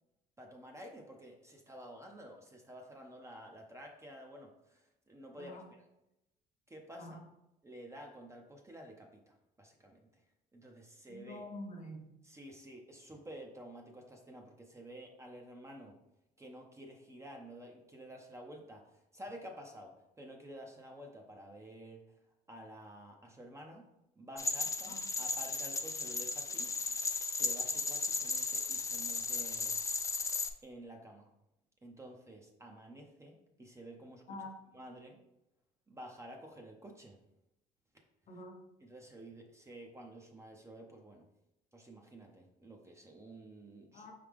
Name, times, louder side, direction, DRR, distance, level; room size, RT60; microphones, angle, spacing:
voice 1, 0.4-5.8 6.7-7.2 7.6-10.2 10.5-11.4 12.2-16.0 16.4-22.0 22.5-23.9 24.2-26.9 27.2-29.8 30.2-30.4 30.6-31.3 31.8-34.4 34.7-35.2 35.9-37.2 38.8-41.2 41.7-44.1, right 1 dB, 15° right, 2 dB, 0.7 m, -51 dB
voice 2, 11.1-12.1 24.9-25.0 34.3-34.6 38.3-38.6 43.9-44.1, left 1 dB, 45° left, 3 dB, 1.0 m, -46 dB
sound 1, 24.4-30.5, left 4 dB, 15° left, 0.4 m, -35 dB
4.6 x 3.3 x 3.5 m, 0.88 s
cardioid pair, 95°, 18 cm